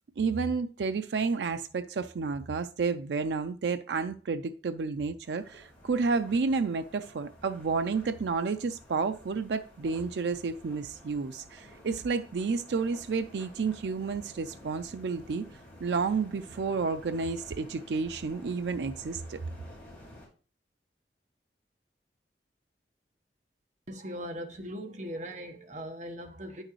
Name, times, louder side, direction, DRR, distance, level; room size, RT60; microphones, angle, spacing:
voice 1, 0.2-15.4 15.8-19.4, right 4 dB, 75° right, 0.4 m, -31 dB
sound 1, 5.2-20.3, left 1 dB, 10° left, 3.3 m, -52 dB
voice 2, 23.9-26.6, equal, 45° right, 1.2 m, -39 dB
8.8 x 6.3 x 3.1 m
head